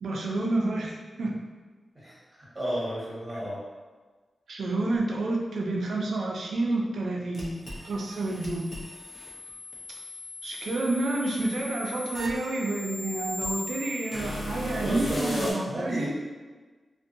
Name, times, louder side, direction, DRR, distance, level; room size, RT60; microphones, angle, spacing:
voice 1, 0.0-1.4 4.5-7.6 7.8-8.8 10.4-16.1, right 2 dB, 90° right, -1 dB, 0.4 m, -29 dB
voice 2, 2.5-3.6 14.8-16.1, equal, 25° right, -9 dB, 1.2 m, -31 dB
sound 1, 7.3-15.5, left 1 dB, 50° left, 0.7 m, -38 dB
2.5 x 2.2 x 2.5 m, 1.4 s
wide cardioid pair, 85°, 0 cm